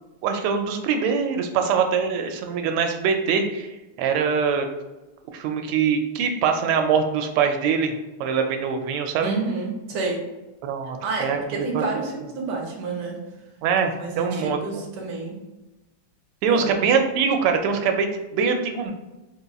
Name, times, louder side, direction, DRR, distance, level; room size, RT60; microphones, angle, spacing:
voice 1, 0.2-4.7 5.3-7.9 8.2-9.3 10.6-11.9 13.6-14.8 16.4-18.9, right 6 dB, 85° right, 5 dB, 1.5 m, -23 dB
voice 2, 9.2-10.2 11.0-13.2 14.0-15.4 16.5-16.6, right 3 dB, 60° right, -1 dB, 1.4 m, -29 dB
4.0 x 2.3 x 3.9 m, 1.1 s
omnidirectional pair, 2.4 m